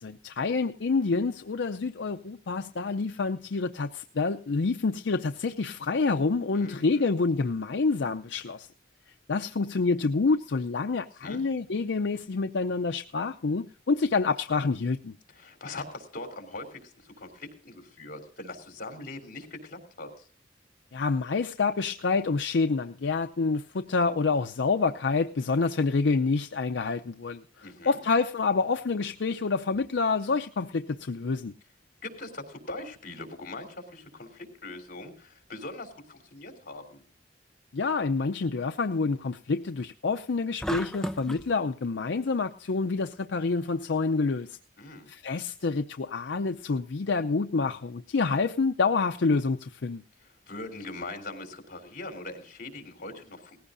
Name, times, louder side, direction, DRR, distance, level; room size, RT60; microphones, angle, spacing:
voice 1, 0.0-8.7 9.3-15.2 20.9-31.5 37.7-44.6 45.1-50.0, left 4 dB, 75° left, 0.6 m, -27 dB
voice 2, 6.5-7.1 11.2-11.4 15.3-20.3 27.6-28.0 32.0-37.0 44.8-45.1 50.5-53.6, left 2 dB, 50° left, 3.4 m, -41 dB
sound 1, 40.6-41.5, equal, 5° left, 0.5 m, -33 dB
19.0 x 15.5 x 2.6 m
head